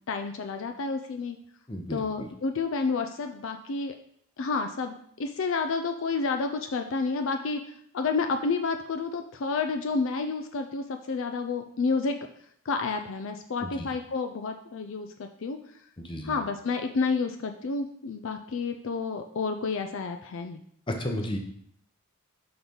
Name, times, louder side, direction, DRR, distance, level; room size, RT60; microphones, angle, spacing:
voice 1, 0.1-1.4 1.9-3.9 4.4-7.6 7.9-12.1 12.7-15.6 16.2-20.6, left 4 dB, 55° left, 6 dB, 0.4 m, -30 dB
voice 2, 1.7-2.3 13.6-13.9 16.0-16.4 20.9-21.4, left 1 dB, 20° left, 3 dB, 0.7 m, -33 dB
6.0 x 3.9 x 5.2 m, 0.68 s
head